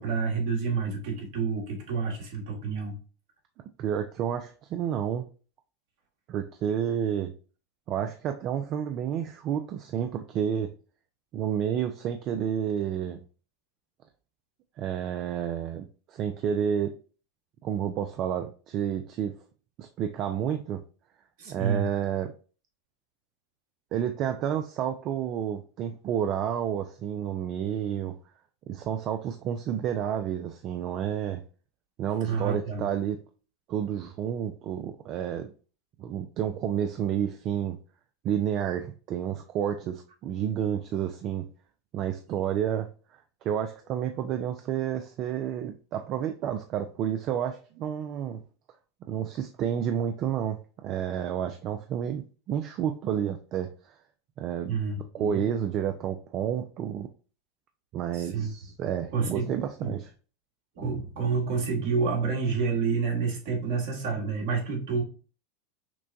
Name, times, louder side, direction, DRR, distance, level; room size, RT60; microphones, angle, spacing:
voice 1, 0.0-2.9 21.4-21.8 32.2-32.9 48.3-48.4 54.7-55.4 58.1-58.5 59.1-59.5 59.8-59.9 60.8-65.0, right 5 dB, 65° right, -1 dB, 1.7 m, -29 dB
voice 2, 3.8-5.3 6.3-7.3 7.9-10.7 11.3-13.2 14.8-17.0 17.6-19.3 19.8-20.8 21.5-22.3 23.9-28.2 28.7-31.4 32.0-33.2 33.7-35.5 36.0-37.8 38.2-41.5 41.9-48.4 49.1-54.0 54.4-54.8 55.1-57.1 57.9-60.1, right 9 dB, 45° right, 7 dB, 0.4 m, -30 dB
6.0 x 2.2 x 2.6 m, 0.37 s
hypercardioid pair, 100°, 0 cm